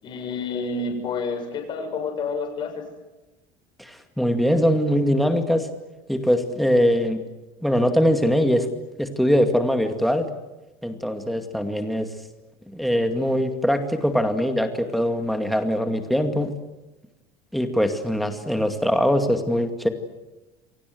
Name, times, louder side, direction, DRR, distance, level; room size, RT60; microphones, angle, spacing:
voice 1, 0.0-2.8, left 4 dB, 35° left, 4 dB, 7.0 m, -29 dB
voice 2, 3.8-5.7 6.1-7.2 7.6-8.7 9.0-10.3 10.8-12.1 12.7-16.5 17.5-19.9, equal, ahead, 5 dB, 2.3 m, -22 dB
29.5 x 24.0 x 7.9 m, 1.1 s
cardioid pair, 180°, 14 cm